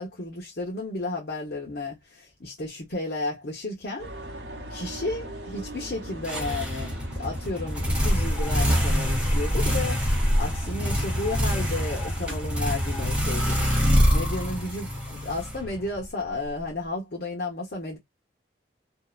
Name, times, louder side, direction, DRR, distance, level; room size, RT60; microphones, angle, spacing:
voice 1, 0.0-4.1 4.7-10.0 10.4-13.8 14.1-18.0, left 2 dB, 60° left, 0.8 m, -33 dB
sound 1, 4.0-11.9, right 1 dB, 65° right, 0.8 m, -40 dB
sound 2, 6.2-16.0, equal, 5° right, 0.8 m, -25 dB
2.7 x 2.0 x 2.3 m
head